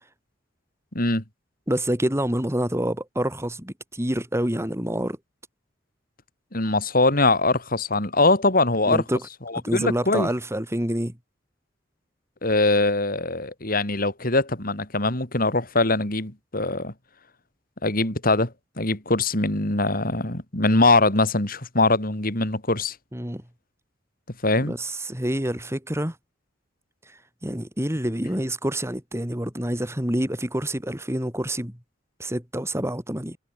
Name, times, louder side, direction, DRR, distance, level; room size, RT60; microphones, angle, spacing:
voice 1, 1.7-5.2 8.9-9.2 9.6-11.1 23.1-23.4 24.6-26.2 27.4-31.8 32.2-33.4, right 1 dB, 15° right, 5.8 m, -27 dB
voice 2, 6.5-9.0 9.5-10.3 12.4-16.9 17.8-22.9 24.4-24.7, left 2 dB, 50° left, 4.7 m, -22 dB
head